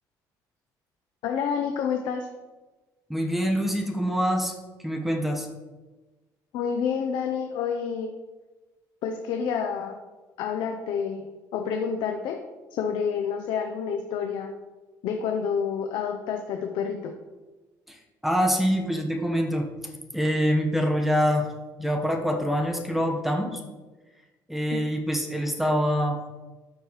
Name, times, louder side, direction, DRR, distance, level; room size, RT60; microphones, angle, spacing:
voice 1, 1.2-2.3 6.5-8.1 9.0-10.0 10.4-12.4 12.8-14.5 15.0-17.1 24.7-24.8, left 7 dB, 80° left, 4 dB, 0.7 m, -28 dB
voice 2, 3.1-4.5 4.8-5.5 17.9-18.0 18.2-19.7 20.1-21.5 21.8-23.6 24.5-26.2, equal, 5° right, 2 dB, 1.2 m, -25 dB
12.5 x 4.5 x 3.2 m, 1.2 s
cardioid pair, 105°, 8 cm